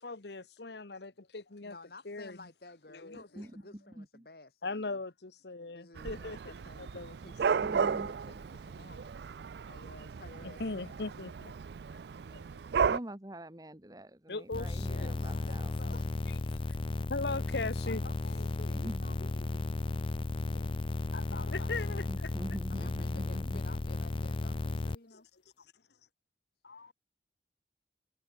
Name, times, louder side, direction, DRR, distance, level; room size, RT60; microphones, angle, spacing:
voice 1, 0.0-1.8 2.0-2.5 2.9-3.5 4.6-6.4 6.8-7.2 7.5-7.8 10.4-11.5 12.3-12.4 14.3-15.4 16.7-16.8 17.1-18.0 21.1-22.3 25.1-25.2 26.6-26.9, left 3 dB, 75° left, 1.2 m, -39 dB
voice 2, 1.6-5.0 5.7-9.1 9.7-11.2 15.0-16.6 17.8-19.8 20.3-20.7 22.7-25.3, left 2 dB, 60° left, 1.9 m, -53 dB
voice 3, 3.1-4.3 7.2-8.3 12.8-16.0 18.7-19.2 22.1-23.6, right 1 dB, 20° right, 1.4 m, -45 dB
Dog / Cat, 6.0-13.0, right 6 dB, 70° right, 0.4 m, -34 dB
sound 1, 14.5-25.0, left 2 dB, 30° left, 0.4 m, -34 dB
head